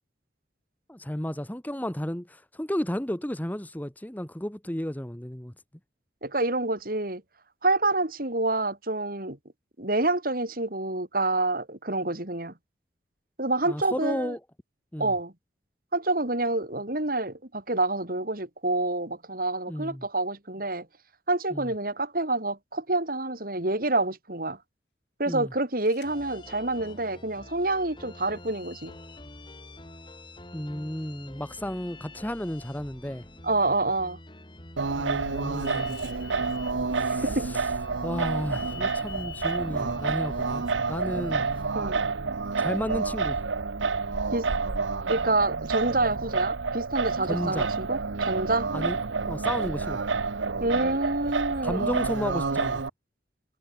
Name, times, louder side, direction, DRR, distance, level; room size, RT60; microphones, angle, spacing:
voice 1, 0.9-5.5 13.6-14.4 14.9-15.1 19.7-20.0 21.5-21.7 25.3-25.5 30.5-33.2 35.0-36.0 36.9-37.6 38.0-41.5 42.6-43.4 47.3-47.7 48.7-49.0 49.2-50.0 51.6-52.8, equal, 10° left, 1.0 m, -33 dB
voice 2, 6.2-7.2 7.6-9.4 9.8-12.5 13.4-14.3 15.0-15.3 15.9-20.9 21.3-24.6 25.2-28.9 33.4-34.2 37.0-37.5 41.7-42.0 44.3-44.5 45.1-48.7 50.6-52.0, right 2 dB, 50° right, 3.2 m, -27 dB
sound 1, 25.9-27.0 28.5-29.6 31.7-32.7 35.6-36.7 38.5-39.6, left 10 dB, 65° left, 7.0 m, -47 dB
sound 2, 26.0-41.6, left 1 dB, 25° left, 4.4 m, -48 dB
Singing, 34.8-52.9, right 4 dB, 85° right, 0.9 m, -29 dB
head